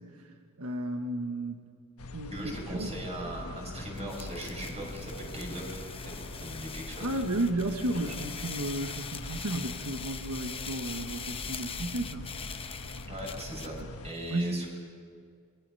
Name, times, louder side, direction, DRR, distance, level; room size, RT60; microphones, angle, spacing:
voice 1, 0.0-1.7 2.1-3.0 7.0-12.3 14.3-14.6, right 1 dB, 85° right, 4 dB, 1.5 m, -33 dB
sound 1, 2.0-14.1, left 2 dB, 80° left, 1.4 m, -43 dB
voice 2, 2.3-6.1 6.4-7.1 9.2-9.3 13.1-13.8 14.0-14.7, right 1 dB, 30° right, 0 dB, 6.1 m, -39 dB
sound 2, 4.0-13.8, left 6 dB, 25° left, 0.9 m, -42 dB
27.0 x 22.5 x 5.7 m, 2.2 s
head